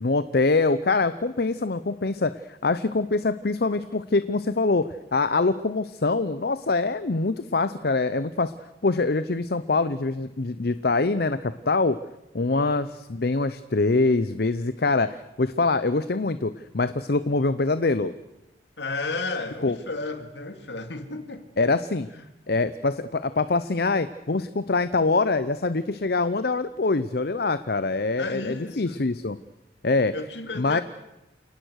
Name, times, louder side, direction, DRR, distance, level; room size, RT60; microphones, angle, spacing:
voice 1, 0.0-8.5 8.8-12.0 12.3-18.1 19.6-19.8 21.6-22.1 22.5-29.4 29.8-30.1 30.5-30.8, left 3 dB, 55° left, 13 dB, 0.7 m, -24 dB
voice 2, 12.5-12.8 18.8-21.4 22.1-22.2 28.2-29.0 30.1-30.8, left 3 dB, 70° left, 7 dB, 2.6 m, -33 dB
29.0 x 18.5 x 6.5 m, 0.93 s
head